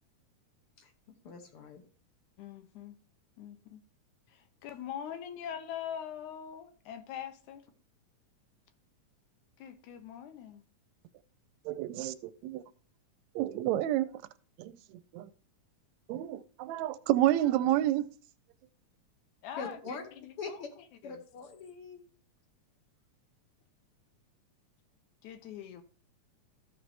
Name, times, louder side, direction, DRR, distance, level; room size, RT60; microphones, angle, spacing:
voice 1, 1.2-1.8 19.6-20.1 20.4-20.7 21.0-22.0, left 4 dB, 65° left, 1.5 m, -42 dB
voice 2, 2.4-3.0 3.4-3.8 4.3-7.7 9.6-10.6 19.4-20.6 21.0-21.2 25.2-25.8, left 9 dB, 85° left, 2.3 m, -43 dB
voice 3, 11.6-12.6 13.3-14.1 14.6-14.7 15.1-15.3 16.1-18.1, right 13 dB, 80° right, 1.7 m, -29 dB
14.5 x 5.1 x 3.3 m
omnidirectional pair, 3.4 m